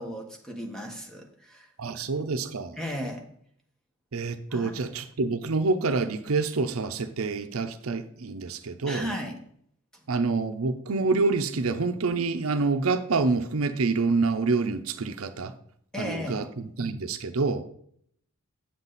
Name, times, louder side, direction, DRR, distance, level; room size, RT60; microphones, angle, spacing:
voice 1, 0.0-1.7 1.9-2.0 2.8-3.2 4.5-4.7 8.9-9.4 10.0-10.1 15.9-16.4, equal, 5° left, 2 dB, 1.3 m, -35 dB
voice 2, 1.8-2.8 4.1-9.1 10.1-15.5 16.0-17.6, right 3 dB, 80° right, 9 dB, 0.6 m, -27 dB
8.8 x 7.4 x 4.0 m, 0.66 s
head